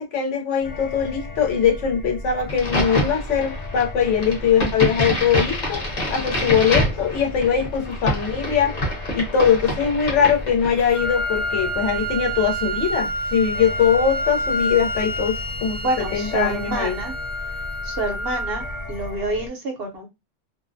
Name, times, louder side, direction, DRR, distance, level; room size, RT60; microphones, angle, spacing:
voice 1, 0.0-5.8 6.1-8.7 9.1-15.8 16.1-17.0, left 7 dB, 90° left, 1.0 m, -21 dB
sound 1, 0.6-19.5, left 2 dB, 70° left, 0.3 m, -35 dB
Crack, 2.5-11.0, equal, 40° left, 0.9 m, -27 dB
Wind instrument woodwind instrument, 10.9-18.8, right 1 dB, 10° left, 0.5 m, -28 dB
voice 2, 15.8-17.1 17.8-20.1, right 2 dB, 60° right, 0.9 m, -27 dB
2.5 x 2.0 x 2.6 m
omnidirectional pair, 1.2 m